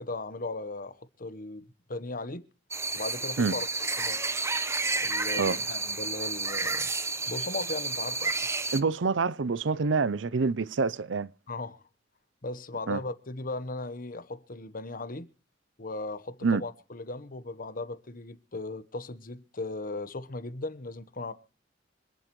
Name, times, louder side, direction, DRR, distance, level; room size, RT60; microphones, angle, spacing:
voice 1, 0.0-2.5 2.9-3.7 4.0-4.2 5.0-6.9 7.3-8.3 11.5-11.8 12.4-15.3 15.8-21.3, left 2 dB, 50° left, 1.2 m, -37 dB
sound 1, 2.7-8.8, right 3 dB, 15° right, 0.9 m, -31 dB
voice 2, 8.7-11.3 12.9-13.0 16.4-16.6, right 4 dB, 75° right, 0.6 m, -26 dB
26.0 x 11.0 x 3.1 m
head